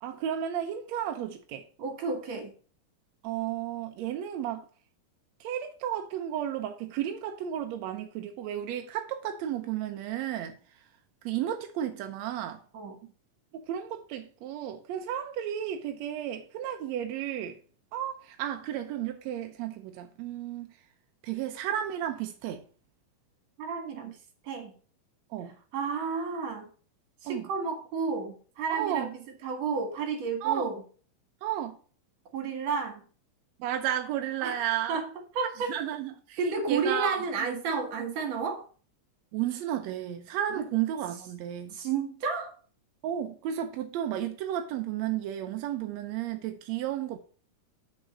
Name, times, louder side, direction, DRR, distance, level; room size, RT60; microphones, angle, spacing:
voice 1, 0.0-1.7 3.2-4.7 5.4-10.8 11.2-12.6 13.5-17.6 17.9-20.8 21.2-22.6 25.3-25.6 27.3-27.5 28.7-29.1 30.4-30.7 31.4-31.8 33.6-35.0 35.7-36.4 36.7-37.5 39.3-41.8 43.0-47.2, right 11 dB, 75° right, 1.6 m, -33 dB
voice 2, 1.8-2.5 12.7-13.0 23.6-24.2 24.4-24.7 25.7-26.7 27.2-29.1 29.4-30.8 32.3-33.1 34.4-34.6 34.9-35.1 35.3-35.7 36.4-38.6 40.6-40.7 41.7-42.5, right 5 dB, 55° right, 2.8 m, -31 dB
5.9 x 5.7 x 6.4 m
omnidirectional pair, 3.8 m